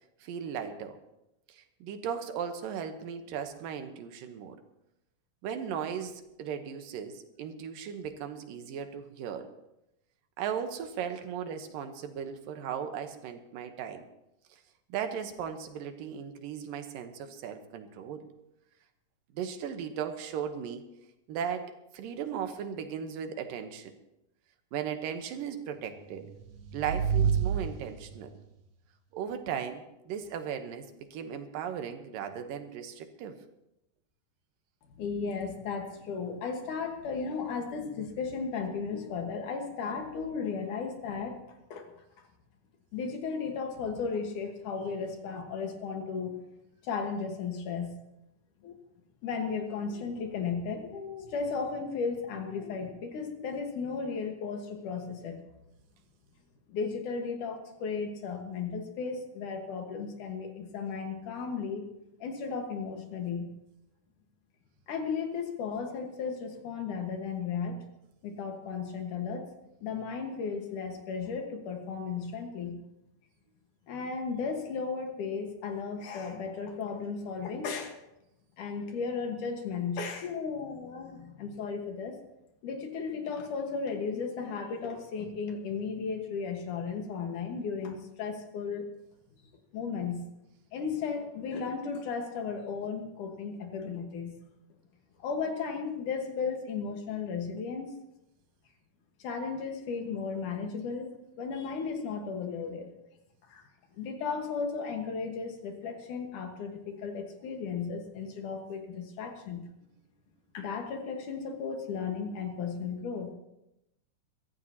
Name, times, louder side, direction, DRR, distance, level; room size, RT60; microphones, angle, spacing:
voice 1, 0.2-1.0 1.5-4.6 5.4-9.5 10.4-14.1 14.9-18.3 19.3-20.8 21.3-24.0 24.7-26.3 26.7-28.3 29.1-33.4, right 8 dB, 90° right, 7 dB, 2.8 m, -37 dB
sound 1, 26.1-28.4, right 7 dB, 60° right, 2.0 m, -30 dB
voice 2, 35.0-41.4 41.7-42.0 42.9-46.4 46.8-48.0 48.6-48.7 49.2-55.4 56.7-61.8 62.2-63.5 64.9-67.9 68.2-69.4 69.8-72.8 73.9-78.0 78.6-82.2 82.6-88.8 89.7-90.2 90.7-94.3 95.2-97.9 99.2-101.1 101.4-102.9 103.5-103.6 104.0-109.7 110.5-113.3, left 5 dB, 70° left, 3 dB, 3.0 m, -35 dB
23.0 x 14.5 x 2.9 m, 0.88 s
omnidirectional pair, 3.9 m